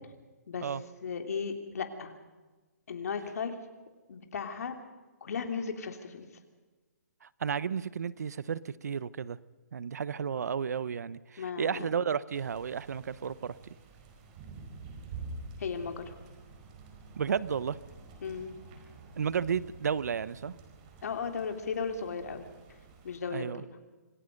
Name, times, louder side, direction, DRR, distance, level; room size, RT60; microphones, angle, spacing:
voice 1, 1.0-2.1 2.9-3.5 4.1-4.7 5.2-6.3 11.4-11.9 15.6-16.1 18.2-18.5 21.0-22.4 23.0-23.6, left 5 dB, 60° left, 6 dB, 3.2 m, -35 dB
voice 2, 7.2-9.4 9.7-13.6 17.2-17.8 19.2-20.5 23.3-23.6, right 7 dB, 70° right, 18 dB, 1.0 m, -32 dB
sound 1, 12.3-23.2, right 3 dB, 30° right, 4.6 m, -48 dB
26.5 x 18.5 x 5.4 m, 1.2 s
hypercardioid pair, 160°, 9 cm